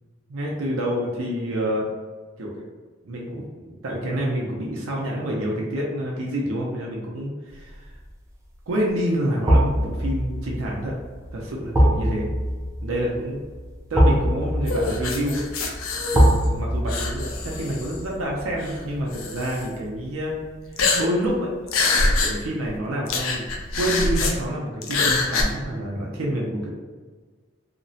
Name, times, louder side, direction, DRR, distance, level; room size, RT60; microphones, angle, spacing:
voice 1, 0.3-1.9 2.4-2.6 3.0-7.9 8.7-10.9 11.3-12.3 12.8-13.4 13.9-15.4 16.1-20.4 20.9-21.5 22.2-23.5 23.8-26.7, equal, 90° right, -2 dB, 0.5 m, -27 dB
sound 1, 7.7-8.1 9.5-20.5 20.8-20.9, equal, 15° right, 0.4 m, -24 dB
sound 2, 14.7-16.6 16.9-18.0 18.6-18.7 19.1-19.6 20.7-21.3 21.7-22.3 22.7-22.8 23.1-24.3 24.8-25.4, left 3 dB, 90° left, 0.4 m, -24 dB
2.8 x 2.0 x 2.7 m, 1.4 s
head